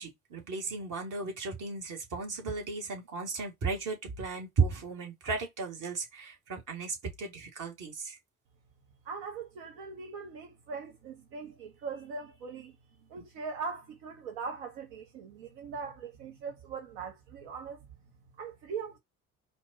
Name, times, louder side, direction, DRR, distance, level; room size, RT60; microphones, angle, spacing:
voice 1, 0.0-8.2, right 4 dB, 45° right, 1.9 m, -34 dB
voice 2, 9.0-12.7 13.1-17.9 18.4-19.0, right 5 dB, 60° right, 1.0 m, -41 dB
4.3 x 2.7 x 4.0 m
figure-of-eight pair, 50°, 44 cm